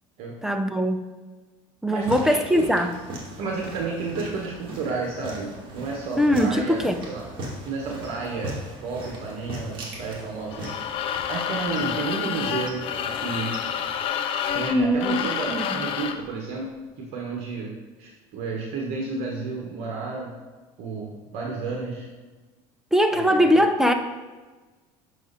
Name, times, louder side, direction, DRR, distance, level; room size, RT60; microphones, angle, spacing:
voice 1, 0.4-1.1 1.8-2.9 6.2-7.0 14.7-15.2 15.5-15.9 22.9-23.9, equal, 5° right, 6 dB, 0.5 m, -21 dB
voice 2, 1.9-2.7 3.4-6.8 7.1-7.2 7.7-10.7 11.3-12.9 13.1-13.5 14.5-17.7 18.0-20.3 20.8-22.1 23.1-23.5, right 4 dB, 60° right, -1 dB, 1.4 m, -31 dB
sound 1, 2.0-13.9, right 1 dB, 45° right, 2.2 m, -39 dB
sound 2, 10.5-16.3, left 9 dB, 50° left, 0.6 m, -29 dB
7.4 x 6.0 x 4.1 m, 1.3 s
cardioid pair, 130°, 12 cm